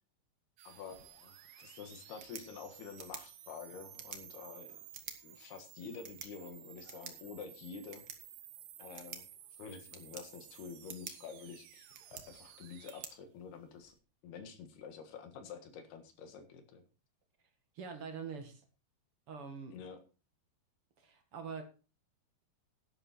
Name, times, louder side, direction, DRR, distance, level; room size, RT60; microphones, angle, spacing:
sound 1, 0.6-13.1, right 11 dB, 90° right, 3.3 m, -55 dB
voice 1, 0.7-4.8 5.2-8.0 8.8-9.2 9.6-11.9 12.3-14.0 14.2-16.8 19.7-20.0, left 6 dB, 80° left, 7 dB, 3.6 m, -48 dB
sound 2, 2.0-14.0, right 7 dB, 65° right, 1.2 m, -53 dB
voice 2, 17.8-18.6 19.3-19.8 21.0-21.6, right 6 dB, 50° right, 6 dB, 1.9 m, -44 dB
11.0 x 11.0 x 4.3 m, 0.33 s
omnidirectional pair, 4.5 m